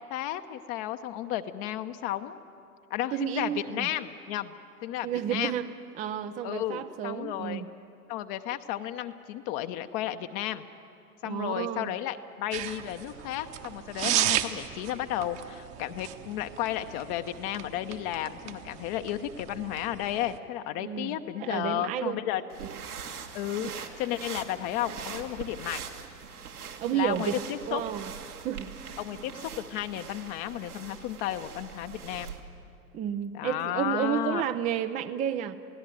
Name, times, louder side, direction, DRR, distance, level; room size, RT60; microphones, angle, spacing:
voice 1, 0.0-2.4 2.9-4.5 4.8-5.5 6.4-7.6 8.1-10.6 11.2-22.4 23.3-25.8 26.9-27.8 29.0-32.3 33.3-34.4, left 12 dB, 40° left, 8 dB, 0.9 m, -33 dB
voice 2, 3.1-3.9 5.0-7.7 11.2-11.9 20.8-22.2 22.6-22.8 23.6-23.7 26.8-27.3 27.7-28.1 28.4-29.0 32.9-35.6, right 10 dB, 20° right, 11 dB, 0.5 m, -31 dB
sound 1, 12.5-20.4, right 12 dB, 35° right, 1.1 m, -35 dB
sound 2, 22.5-32.4, right 7 dB, 75° right, 2.1 m, -42 dB
28.0 x 17.0 x 7.7 m, 2.6 s
figure-of-eight pair, 90°, 45 cm